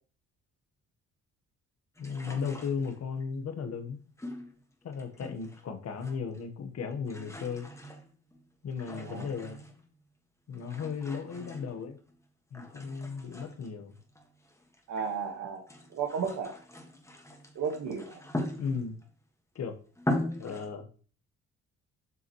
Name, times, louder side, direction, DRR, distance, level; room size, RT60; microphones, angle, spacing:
voice 1, 2.0-4.0 4.8-7.7 8.6-9.6 10.5-12.0 12.5-14.0 18.6-19.0 19.5-19.8 20.4-20.9, left 5 dB, 55° left, 7 dB, 1.3 m, -35 dB
sound 1, 2.0-3.2 4.2-5.7 5.9-6.5 6.8-9.9 10.5-12.2 12.5-15.2 15.6-19.1 19.6-19.7 20.0-20.7, left 1 dB, 10° left, 1.6 m, -40 dB
voice 2, 14.9-15.6 15.9-16.6 17.5-18.2, right 6 dB, 70° right, -1 dB, 1.6 m, -33 dB
7.9 x 5.6 x 3.1 m, 0.41 s
cardioid pair, 90°, 30 cm